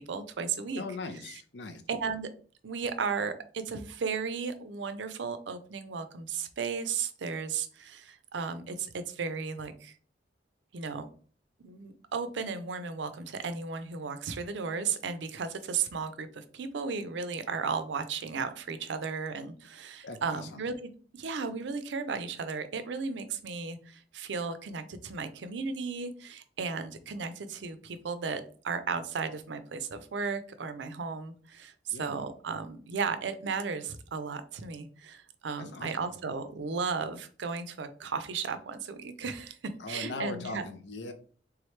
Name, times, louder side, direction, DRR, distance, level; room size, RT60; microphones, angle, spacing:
voice 1, 0.1-0.8 1.3-1.4 1.9-2.3 2.6-9.9 10.7-11.1 11.6-39.6 39.9-40.6, right 5 dB, 80° right, 11 dB, 0.5 m, -35 dB
voice 2, 0.8-1.8 20.0-20.6 31.9-32.2 35.6-36.2 39.8-41.1, left 3 dB, 70° left, 7 dB, 0.6 m, -40 dB
3.5 x 3.1 x 3.2 m, 0.43 s
head